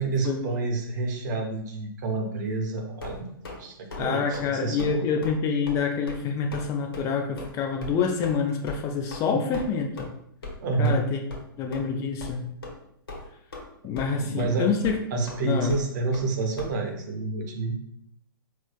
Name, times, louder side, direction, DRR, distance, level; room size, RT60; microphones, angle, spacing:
voice 1, 0.0-5.0 9.3-9.6 10.6-11.0 14.2-14.7 15.1-17.7, right 3 dB, 50° right, 3 dB, 0.7 m, -29 dB
sound 1, 3.0-3.6 3.9-4.1 4.3-4.5 4.8-5.0 5.2-5.4 5.7-5.8 6.1-6.2 6.5-6.7 6.9-7.0 7.4-7.5 7.8-7.9 8.2-8.4 8.7-8.8 9.1-9.2 9.5-9.7 10.0-10.1 10.4-10.6 10.8-11.0 11.3-11.4 11.7-11.8 12.2-12.3 12.6-12.8 13.1-13.7 14.0-14.1 14.4-14.5 14.8-15.0 15.3-15.4 15.7-15.8 16.1-16.3 16.6-16.7, left 3 dB, 75° left, 0.9 m, -38 dB
voice 2, 4.0-10.1 10.8-11.2 11.6-12.5 13.8-15.0 15.4-15.7, left 6 dB, 25° left, 3 dB, 0.4 m, -27 dB
4.3 x 2.1 x 2.4 m, 0.73 s
hypercardioid pair, 125°, 12 cm